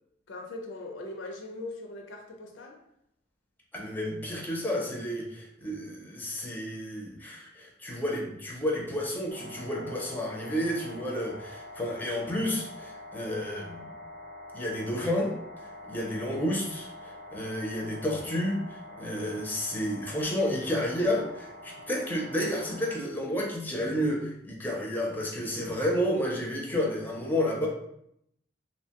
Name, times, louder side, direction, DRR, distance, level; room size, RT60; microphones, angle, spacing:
voice 1, 0.3-2.8, left 2 dB, 85° left, 1 dB, 0.5 m, -40 dB
voice 2, 3.7-13.9 14.5-15.3 15.9-27.7, equal, 10° left, -2 dB, 0.5 m, -31 dB
sound 1, 9.3-23.0, left 1 dB, 50° right, 0.6 m, -45 dB
2.8 x 2.1 x 2.8 m, 0.74 s
head